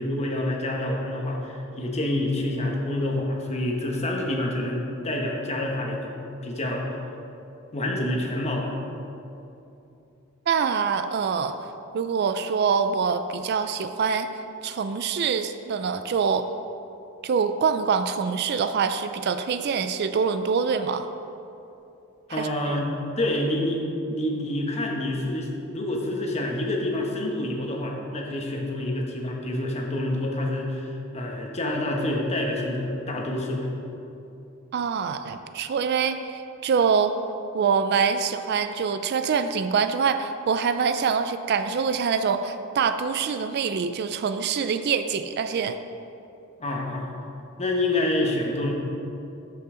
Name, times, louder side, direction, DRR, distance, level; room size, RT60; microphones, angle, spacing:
voice 1, 0.0-6.1 6.4-7.0 7.7-8.7 22.3-23.8 24.1-33.7 46.6-47.2 47.6-48.7, left 1 dB, 30° left, 0 dB, 1.1 m, -27 dB
voice 2, 10.5-11.6 11.9-14.3 14.6-16.5 17.2-21.1 22.3-22.8 34.7-37.1 37.5-45.8, right 6 dB, 50° right, 9 dB, 0.3 m, -25 dB
13.0 x 5.5 x 3.8 m, 2.8 s
head